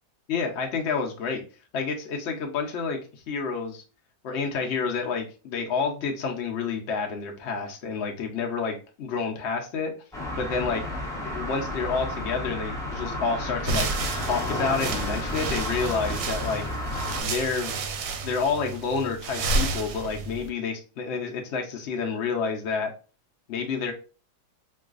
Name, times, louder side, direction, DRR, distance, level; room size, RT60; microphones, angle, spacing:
voice 1, 0.3-1.4 1.7-3.8 4.2-9.9 10.4-10.8 11.2-13.9 14.2-16.6 17.2-17.8 18.2-22.9 23.5-23.9, left 5 dB, 80° left, 2 dB, 0.6 m, -29 dB
sound 1, 10.1-17.2, left 1 dB, 5° left, 0.3 m, -32 dB
sound 2, 13.6-20.5, right 3 dB, 85° right, 1.3 m, -31 dB
4.5 x 2.4 x 2.4 m, 0.35 s
omnidirectional pair, 2.0 m